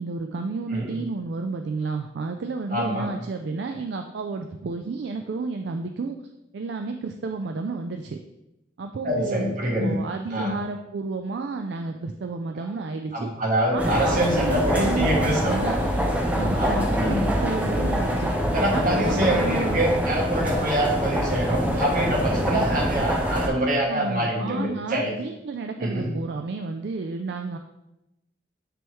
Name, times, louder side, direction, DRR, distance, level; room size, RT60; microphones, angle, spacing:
voice 1, 0.0-6.2 6.5-8.2 8.8-13.3 13.7-15.8 16.3-18.3 18.7-19.8 23.9-27.6, right 4 dB, 65° right, 5 dB, 0.4 m, -31 dB
voice 2, 2.7-3.1 9.0-10.0 10.3-10.5 13.1-15.7 16.6-17.2 18.5-25.1 25.8-26.1, right 1 dB, 45° right, -1 dB, 1.4 m, -25 dB
sound 1, 13.8-23.5, equal, 10° right, 0.7 m, -24 dB
9.1 x 3.5 x 3.1 m, 0.91 s
head